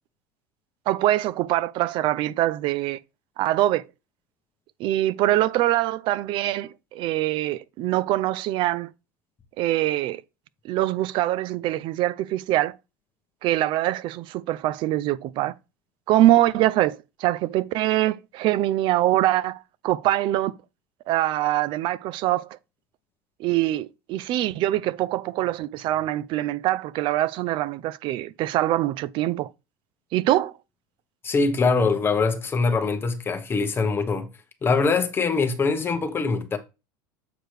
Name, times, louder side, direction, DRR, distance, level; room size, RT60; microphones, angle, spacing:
voice 1, 0.9-3.0 3.4-3.8 4.8-8.9 9.6-10.2 10.6-12.8 13.4-15.5 16.1-20.5 21.1-22.6 23.4-29.5 30.1-30.5, right 14 dB, 50° right, 0.4 m, -23 dB
voice 2, 31.2-34.3 34.6-36.6, left 4 dB, 20° left, 1.1 m, -23 dB
7.8 x 4.6 x 3.3 m
supercardioid pair, 125°, 11 cm